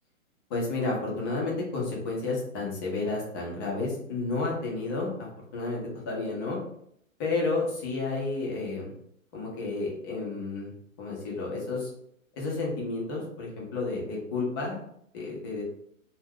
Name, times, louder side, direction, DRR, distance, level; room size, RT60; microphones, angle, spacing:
voice 1, 0.5-5.8 6.1-6.6 7.2-8.9 9.3-10.7 11.0-11.9 12.4-14.8 15.1-15.6, left 3 dB, 20° left, -3 dB, 0.4 m, -31 dB
2.3 x 2.2 x 3.4 m, 0.71 s
hypercardioid pair, 135°, 41 cm